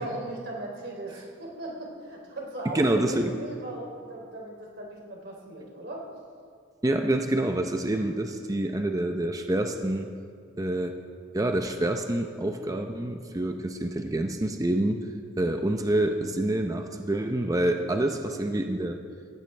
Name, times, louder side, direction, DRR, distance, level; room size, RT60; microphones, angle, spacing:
voice 1, 0.0-6.0 8.1-8.2, right 1 dB, 60° right, -2 dB, 3.2 m, -38 dB
voice 2, 2.7-3.3 6.8-10.1 10.6-11.0 11.3-15.0 15.4-19.0, right 1 dB, 15° right, 5 dB, 0.6 m, -27 dB
18.0 x 15.5 x 3.3 m, 2.2 s
head